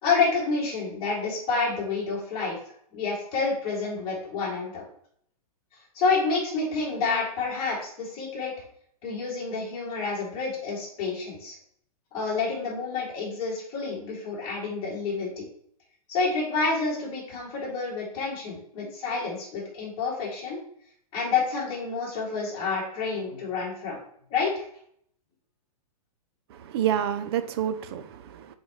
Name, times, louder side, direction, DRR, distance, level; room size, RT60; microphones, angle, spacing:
voice 1, 0.0-2.6 2.9-4.8 5.9-8.5 9.0-11.5 12.1-15.5 16.1-20.6 21.1-24.0 24.3-24.6, left 4 dB, 25° left, -5 dB, 2.9 m, -28 dB
voice 2, 26.5-28.6, right 10 dB, 40° right, 11 dB, 0.6 m, -28 dB
8.5 x 4.0 x 3.2 m, 0.65 s
hypercardioid pair, 160°, 20 cm